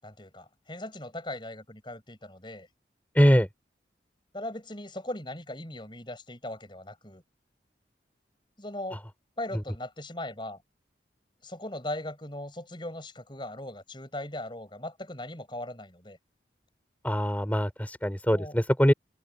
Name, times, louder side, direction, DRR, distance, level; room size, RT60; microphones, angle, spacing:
voice 1, 0.0-2.7 4.3-7.2 8.6-9.0 9.4-10.6 11.4-16.2 18.3-18.6, left 1 dB, 25° left, 6.9 m, -39 dB
voice 2, 3.1-3.5 17.0-18.9, equal, 10° left, 4.5 m, -22 dB
head